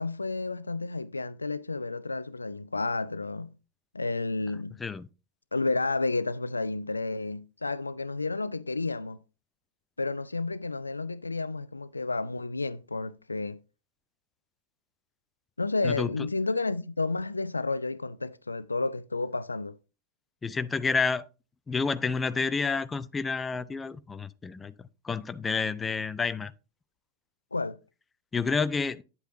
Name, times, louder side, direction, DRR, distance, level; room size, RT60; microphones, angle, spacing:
voice 1, 0.0-3.5 3.9-4.8 5.5-9.2 10.0-13.6 15.6-19.8 27.5-27.8, left 3 dB, 80° left, 0.4 m, -31 dB
voice 2, 20.4-21.3 21.7-24.7 25.0-26.5 28.3-29.0, left 5 dB, 15° left, 0.5 m, -29 dB
9.4 x 8.1 x 2.9 m
figure-of-eight pair, 90°, 0 cm